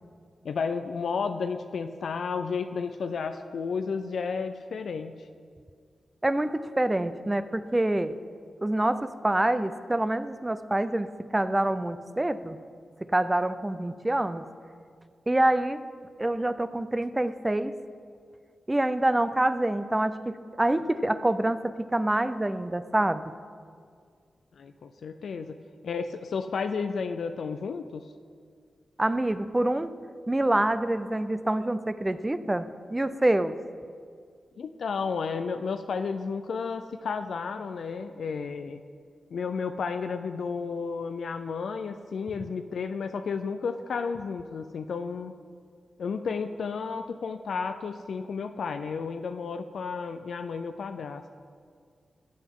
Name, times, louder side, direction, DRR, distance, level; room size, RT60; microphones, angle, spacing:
voice 1, 0.4-5.1 24.6-25.5 25.8-28.0 34.6-38.8 39.3-45.3 46.0-51.2, left 5 dB, 80° left, 8 dB, 0.4 m, -32 dB
voice 2, 6.2-8.2 8.6-11.1 11.3-12.6 13.0-14.4 15.3-15.8 16.2-17.7 18.7-23.2 29.0-29.9 30.3-33.5, right 1 dB, 20° right, 12 dB, 0.5 m, -26 dB
15.0 x 7.8 x 3.7 m, 2.1 s
cardioid pair, 55°, 0 cm